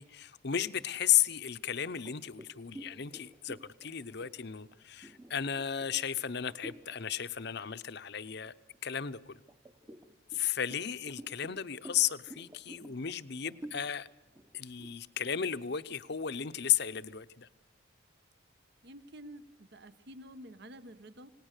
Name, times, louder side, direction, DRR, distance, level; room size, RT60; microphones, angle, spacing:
voice 1, 0.0-8.5 8.8-9.4 10.3-14.1 14.5-17.5, left 9 dB, 55° left, 0.8 m, -34 dB
sound 1, 1.9-7.0 7.4-7.7 8.1-8.9 9.5-16.2, right 1 dB, 15° right, 0.9 m, -51 dB
voice 2, 18.8-21.3, equal, 55° right, 1.1 m, -49 dB
27.5 x 18.5 x 6.7 m
head